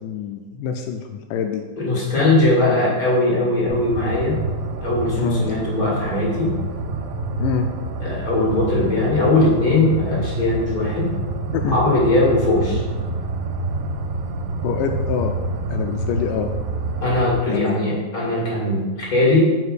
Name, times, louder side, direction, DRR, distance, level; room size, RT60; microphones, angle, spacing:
voice 1, 0.0-1.6 5.2-5.6 7.4-7.7 11.5-11.8 12.7-12.8 14.6-15.3 15.7-16.5 17.5-17.8, left 6 dB, 80° left, 5 dB, 1.9 m, -25 dB
voice 2, 1.8-4.4 4.8-6.5 8.0-11.1 11.7-12.8 17.0-19.4, left 2 dB, 30° left, -6 dB, 1.8 m, -20 dB
sound 1, 3.7-17.4, right 2 dB, 85° right, 2.4 m, -27 dB
5.4 x 4.7 x 6.4 m, 1.3 s
omnidirectional pair, 4.2 m